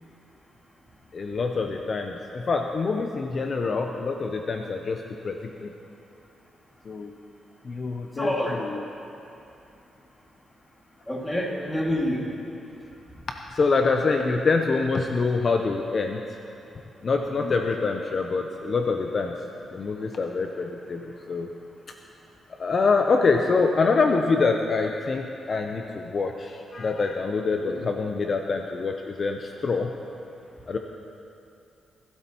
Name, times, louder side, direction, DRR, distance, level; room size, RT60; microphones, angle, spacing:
voice 1, 1.1-5.7 6.8-7.1 7.6-8.8 13.5-16.2 17.0-19.3 19.7-21.5 22.6-29.9 30.7-30.8, left 4 dB, 45° left, 4 dB, 0.6 m, -25 dB
voice 2, 8.2-8.6 11.1-12.2 17.4-17.5 27.6-27.8, left 1 dB, 10° left, -2 dB, 2.1 m, -27 dB
18.5 x 12.5 x 3.0 m, 2.7 s
cardioid pair, 100°, 0 cm